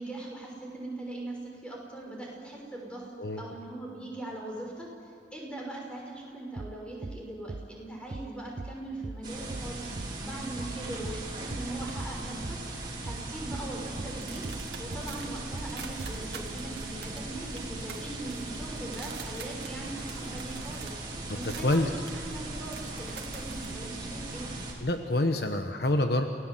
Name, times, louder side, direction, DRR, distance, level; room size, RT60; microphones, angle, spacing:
voice 1, 0.0-3.1 3.4-12.6 13.0-14.4 14.8-24.5, right 2 dB, 5° left, -2 dB, 6.0 m, -40 dB
sound 1, 6.6-6.8 7.0-7.2 7.5-7.7 8.1-8.3 8.6-8.8 9.0-9.2 9.5-9.7 10.0-10.2 10.6-10.8 11.0-11.2 11.5-11.7 12.0-12.2 12.4-12.6 13.1-13.3 13.5-13.7 14.0-14.2 14.4-14.6 14.9-15.1 15.5-15.7 16.0-16.2, right 2 dB, 45° right, 0.5 m, -39 dB
sound 2, 9.2-24.7, right 2 dB, 25° right, 4.2 m, -39 dB
sound 3, 13.6-23.7, right 7 dB, 70° right, 2.4 m, -48 dB
voice 2, 21.3-21.9 24.8-26.3, left 1 dB, 60° left, 6 dB, 1.2 m, -27 dB
29.0 x 18.0 x 7.8 m, 2.6 s
head